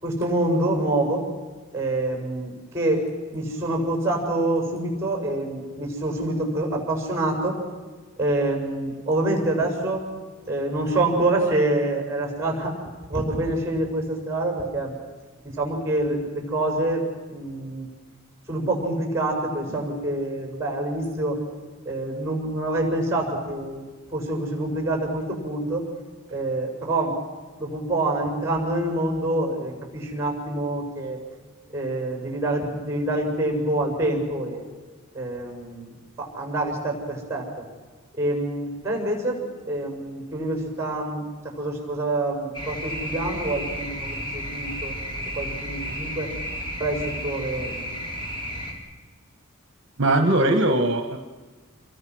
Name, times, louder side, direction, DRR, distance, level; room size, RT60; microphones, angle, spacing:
voice 1, 0.0-1.2 1.7-3.0 3.3-7.6 8.2-10.1 10.5-12.8 13.1-14.9 15.5-17.0 17.3-17.9 18.5-21.4 21.8-25.8 26.3-27.2 27.6-31.2 31.7-34.6 35.1-35.9 36.2-37.5 38.1-44.9 45.3-46.3 46.8-47.9, right 1 dB, 15° right, 2 dB, 6.6 m, -26 dB
sound 1, 42.5-48.7, equal, 20° left, 3.6 m, -32 dB
voice 2, 50.0-51.2, right 1 dB, 55° right, 6 dB, 1.3 m, -20 dB
27.5 x 23.0 x 6.3 m, 1.3 s
head